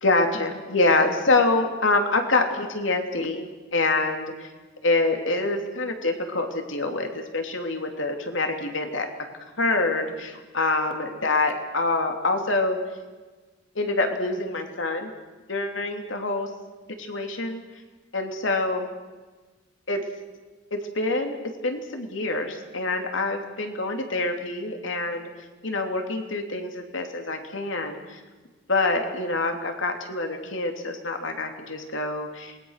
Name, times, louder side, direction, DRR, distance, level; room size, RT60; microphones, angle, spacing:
voice 1, 0.0-3.5 3.7-4.5 4.8-9.1 9.6-12.8 13.7-15.1 15.5-16.5 17.0-17.6 18.1-18.9 19.9-20.0 20.7-21.4 21.6-25.3 25.6-28.2 28.7-32.7, left 2 dB, 85° left, 4 dB, 3.0 m, -26 dB
27.5 x 21.0 x 6.6 m, 1.3 s
head